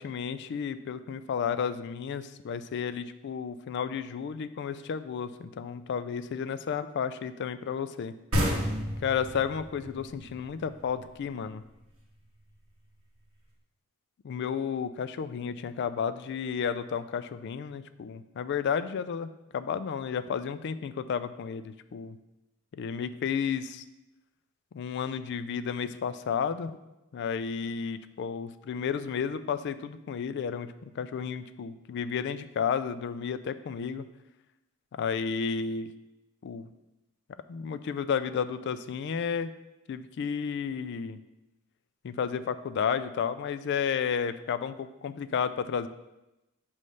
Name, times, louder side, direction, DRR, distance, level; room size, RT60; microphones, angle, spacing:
voice 1, 0.0-8.1 9.0-11.6 14.2-22.2 22.7-23.8 24.7-26.8 27.1-34.1 34.9-35.9 36.4-36.7 37.5-39.5 39.9-41.2 42.0-45.9, left 7 dB, 55° left, 12 dB, 0.3 m, -32 dB
sound 1, 8.3-11.7, equal, 80° right, 1.5 m, -31 dB
6.4 x 3.2 x 5.4 m, 0.97 s
head